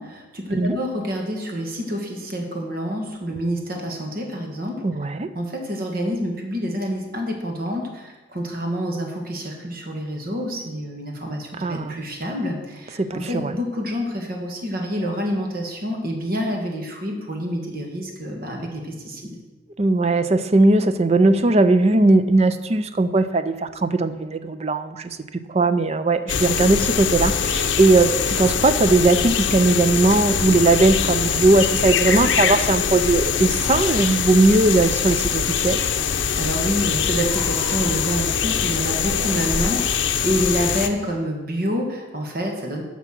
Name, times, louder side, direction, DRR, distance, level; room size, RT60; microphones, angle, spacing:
voice 1, 0.0-4.8 5.3-19.4 36.4-42.8, equal, 50° right, 2 dB, 1.7 m, -27 dB
voice 2, 4.8-5.3 11.6-12.0 13.0-13.5 19.8-25.2 25.5-35.8, right 2 dB, 35° right, 11 dB, 0.5 m, -19 dB
sound 1, 26.3-40.9, left 7 dB, 70° left, 0.7 m, -23 dB
Water / Splash splatter, 31.1-41.1, right 1 dB, 15° right, 3.9 m, -42 dB
9.9 x 6.0 x 5.9 m, 1.1 s
head